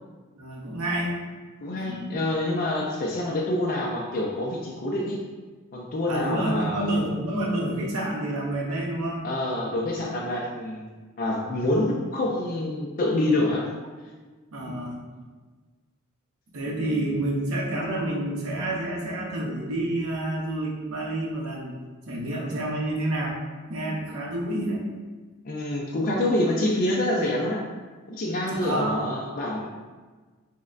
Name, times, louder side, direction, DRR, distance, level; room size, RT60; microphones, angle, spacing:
voice 1, 0.4-1.3 1.7-2.2 6.1-9.3 14.5-15.0 16.5-21.7 22.1-23.4 23.7-24.8 28.5-29.0, right 1 dB, 75° right, -2 dB, 0.8 m, -29 dB
voice 2, 1.6-5.2 5.7-7.0 9.2-10.8 11.2-13.7 14.6-14.8 25.4-27.6 28.1-29.7, left 1 dB, 40° left, -3 dB, 0.4 m, -26 dB
6.2 x 2.1 x 2.4 m, 1.4 s
head